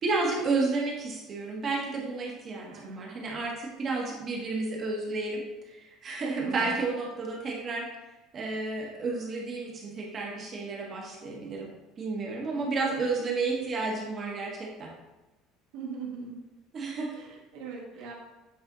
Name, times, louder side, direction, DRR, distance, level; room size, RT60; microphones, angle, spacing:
voice 1, 0.0-7.9 8.3-11.7 12.0-14.9 16.7-17.2, right 3 dB, 25° right, -2 dB, 1.3 m, -31 dB
voice 2, 2.7-3.1 6.4-6.8 12.5-13.9 15.7-16.4 17.1-18.1, right 5 dB, 85° right, -2 dB, 1.8 m, -42 dB
8.7 x 3.3 x 4.0 m, 1.1 s
cardioid pair, 180°, 0 cm